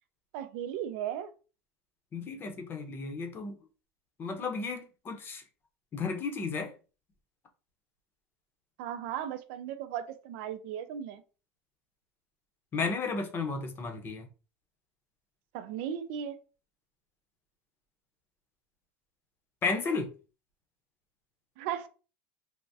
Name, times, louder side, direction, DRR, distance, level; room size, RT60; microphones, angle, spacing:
voice 1, 0.3-1.3 8.8-11.2 15.5-16.4 21.6-21.9, right 9 dB, 75° right, 0.4 m, -36 dB
voice 2, 2.1-3.5 4.2-5.4 5.9-6.7 12.7-14.3 19.6-20.1, left 4 dB, 30° left, 0.7 m, -33 dB
3.4 x 2.0 x 2.6 m
supercardioid pair, 125°, 7 cm